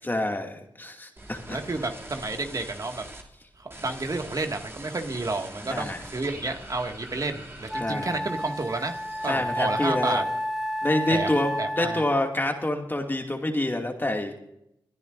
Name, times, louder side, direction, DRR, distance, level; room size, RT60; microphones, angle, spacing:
voice 1, 0.0-1.6 5.7-6.0 7.8-8.2 9.3-10.2 10.8-14.3, left 1 dB, 25° left, 3 dB, 2.4 m, -27 dB
sound 1, 1.2-3.2 3.7-10.2 10.6-11.1, right 1 dB, 25° right, 2.8 m, -44 dB
voice 2, 1.5-3.0 3.6-9.0 9.2-10.2 11.1-12.0, right 3 dB, 45° right, 5 dB, 2.1 m, -31 dB
Wind instrument woodwind instrument, 7.1-7.2 7.7-12.3, equal, ahead, 1.5 m, -31 dB
27.0 x 10.5 x 2.6 m, 0.79 s
cardioid pair, 45°, 8 cm